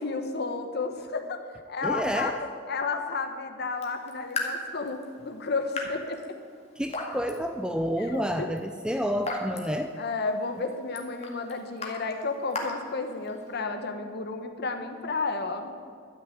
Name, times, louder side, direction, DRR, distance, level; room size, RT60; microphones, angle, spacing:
voice 1, 0.0-2.3 2.7-6.4 8.1-8.5 10.0-15.7, left 4 dB, 55° left, 6 dB, 1.1 m, -32 dB
voice 2, 1.8-2.4 6.8-10.0, equal, 5° right, 6 dB, 0.5 m, -29 dB
Raindrop / Drip, 3.7-13.6, left 2 dB, 35° left, 2.0 m, -39 dB
12.0 x 6.7 x 9.3 m, 2.1 s
head